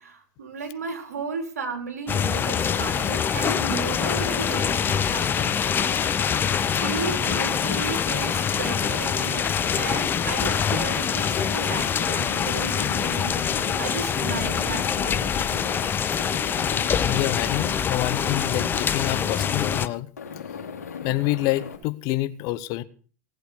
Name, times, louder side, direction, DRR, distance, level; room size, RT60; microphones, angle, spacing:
voice 1, 0.0-5.9 6.8-9.5 9.8-15.2, right 5 dB, 75° right, 3.8 m, -34 dB
sound 1, 2.1-19.9, left 7 dB, 25° left, 0.8 m, -25 dB
Aircraft, 2.4-13.8 14.1-15.9 16.2-17.8 18.1-19.9 20.2-21.8, left 6 dB, 75° left, 3.8 m, -38 dB
voice 2, 17.1-20.1 21.0-22.8, left 17 dB, 45° left, 0.9 m, -27 dB
18.0 x 8.0 x 6.7 m
figure-of-eight pair, 90°, 9 cm